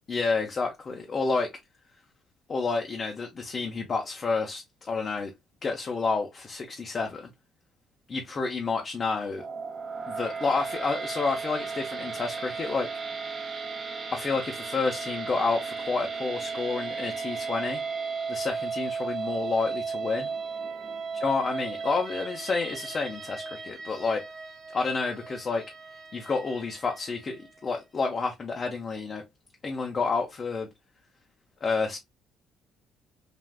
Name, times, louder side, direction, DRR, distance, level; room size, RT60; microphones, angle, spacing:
voice 1, 0.1-1.5 2.5-5.3 5.6-7.3 8.1-9.4 10.1-12.9 14.1-17.8 18.3-20.3 21.2-24.2 24.7-25.6 26.1-29.2 29.6-30.7 31.6-32.0, left 4 dB, 35° left, 0.5 m, -29 dB
sound 1, 9.3-27.6, right 5 dB, 35° right, 0.6 m, -35 dB
3.3 x 2.4 x 2.2 m
cardioid pair, 115°, 0 cm